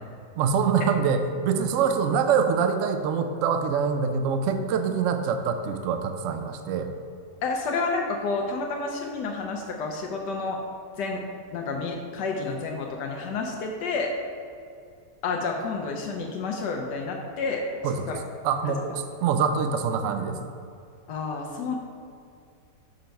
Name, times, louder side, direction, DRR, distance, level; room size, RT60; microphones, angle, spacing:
voice 1, 0.4-6.9 17.8-18.1 18.4-20.5, right 6 dB, 75° right, 7 dB, 0.7 m, -25 dB
voice 2, 7.4-10.6 11.0-11.2 11.5-14.2 15.2-17.7 18.1-18.2 21.1-21.8, left 4 dB, 80° left, 1 dB, 1.2 m, -30 dB
6.6 x 4.5 x 5.2 m, 2.4 s
omnidirectional pair, 1.9 m